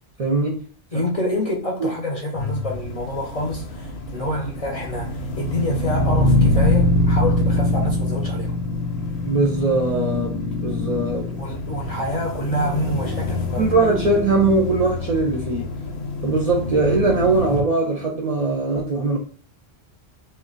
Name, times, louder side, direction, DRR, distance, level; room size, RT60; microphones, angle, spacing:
voice 1, 0.2-0.7 1.8-1.9 9.2-11.3 13.6-15.7 16.2-19.2, right 3 dB, 50° right, 0.5 m, -21 dB
voice 2, 0.9-8.5 11.3-13.6, left 1 dB, 40° left, 0.6 m, -27 dB
sound 1, 2.4-17.6, left 1 dB, 75° left, 0.8 m, -24 dB
2.3 x 2.1 x 3.7 m
omnidirectional pair, 1.1 m